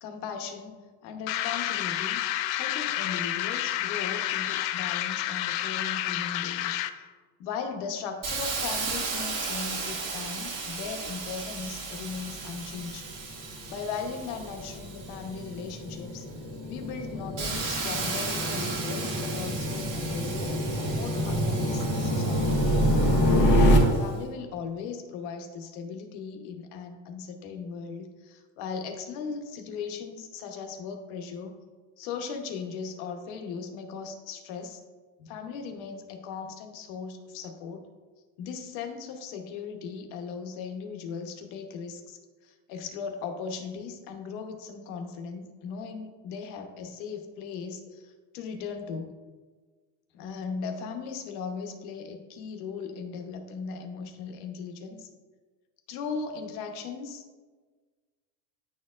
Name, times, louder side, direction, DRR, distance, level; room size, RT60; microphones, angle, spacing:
voice 1, 0.0-2.2 2.5-6.8 7.4-13.1 13.7-16.2 16.7-22.7 23.7-31.6 32.0-34.8 35.2-37.9 38.4-49.1 50.1-55.1 55.9-57.3, left 5 dB, 80° left, 6 dB, 1.0 m, -38 dB
sound 1, 1.3-7.1, left 13 dB, 60° left, 0.5 m, -30 dB
Hiss, 8.2-15.8 16.3-24.1, right 4 dB, 40° right, 1.4 m, -36 dB
sound 2, 12.7-23.8, equal, 20° left, 1.4 m, -27 dB
10.0 x 4.4 x 2.4 m, 1.4 s
cardioid pair, 130°, 49 cm